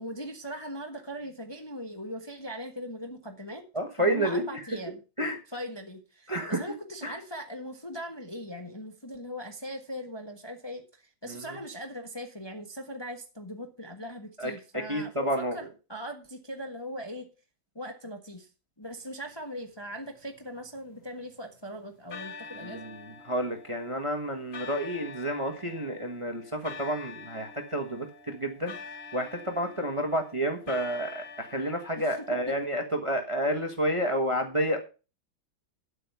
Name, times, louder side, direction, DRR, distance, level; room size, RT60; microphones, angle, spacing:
voice 1, 0.0-3.6 4.0-5.0 5.5-17.3 17.7-18.5 18.8-22.9 32.0-32.2 32.5-32.6, equal, 15° left, 3 dB, 1.3 m, -40 dB
voice 2, 3.7-4.6 5.2-5.4 6.3-6.6 7.0-7.1 11.3-11.4 14.4-15.6 22.5-28.8 29.1-34.8, equal, 20° right, 4 dB, 1.3 m, -30 dB
sound 1, 20.1-21.5 22.1-32.7, left 5 dB, 45° left, 0.9 m, -46 dB
9.8 x 8.2 x 5.6 m, 0.32 s
omnidirectional pair, 2.1 m